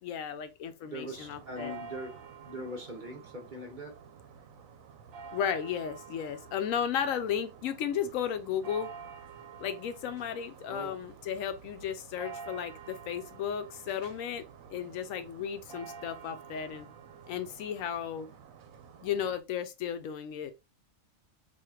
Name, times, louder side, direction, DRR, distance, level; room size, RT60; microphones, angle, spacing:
voice 1, 0.0-1.7 5.3-8.9 9.6-16.9 17.3-18.3 19.0-20.5, left 8 dB, 80° left, 1.0 m, -34 dB
voice 2, 0.9-2.1 2.4-4.0 10.7-10.9, equal, 40° right, 0.8 m, -41 dB
sound 1, 1.0-19.4, right 6 dB, 80° right, 1.0 m, -49 dB
4.3 x 2.7 x 2.3 m
omnidirectional pair, 1.4 m